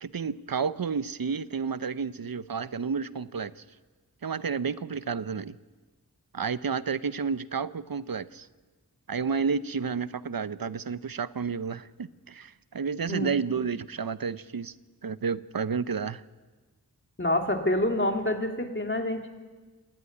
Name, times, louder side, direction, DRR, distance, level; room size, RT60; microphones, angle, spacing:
voice 1, 0.0-3.6 4.2-5.6 6.3-8.5 9.1-14.7 15.0-16.2, right 5 dB, 70° right, 15 dB, 0.7 m, -31 dB
voice 2, 17.2-19.3, left 1 dB, 30° left, 3 dB, 2.5 m, -27 dB
27.5 x 11.5 x 9.5 m, 1.3 s
wide cardioid pair, 50°, 37 cm